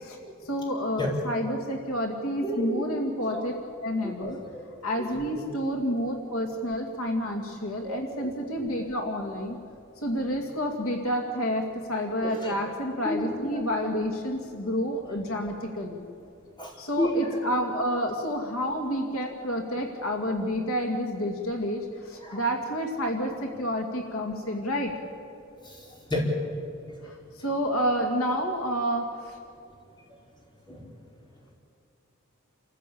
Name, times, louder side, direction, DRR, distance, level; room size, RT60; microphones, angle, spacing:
voice 1, 0.4-3.5 3.8-4.4 4.8-9.5 10.0-16.0 16.8-24.9 27.0-27.1 27.4-29.4, equal, 80° left, 2 dB, 2.3 m, -29 dB
voice 2, 2.4-2.8 3.3-3.4 4.0-4.6 5.0-5.4 7.8-8.6 12.2-12.5 13.0-13.6 16.6-17.4 22.2-22.4 25.6-26.2 27.4-27.5 30.7-30.8, equal, 20° left, -2 dB, 4.6 m, -32 dB
28.0 x 15.0 x 8.6 m, 2.5 s
head